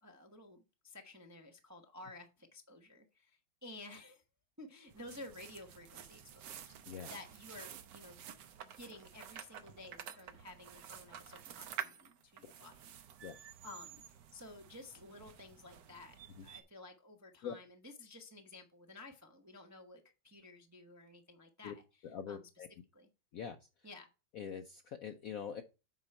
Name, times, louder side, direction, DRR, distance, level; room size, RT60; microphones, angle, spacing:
voice 1, 0.0-4.2 4.6-6.7 7.1-8.2 8.6-12.7 13.6-14.0 14.3-21.8 22.3-22.4 22.9-23.1 23.8-24.1, left 2 dB, 15° right, 0.5 m, -53 dB
sound 1, 4.9-16.6, right 9 dB, 70° right, 1.3 m, -50 dB
voice 2, 22.0-22.7 23.3-23.9 24.3-25.6, left 7 dB, 70° left, 0.8 m, -44 dB
8.1 x 4.9 x 4.3 m
omnidirectional pair, 2.1 m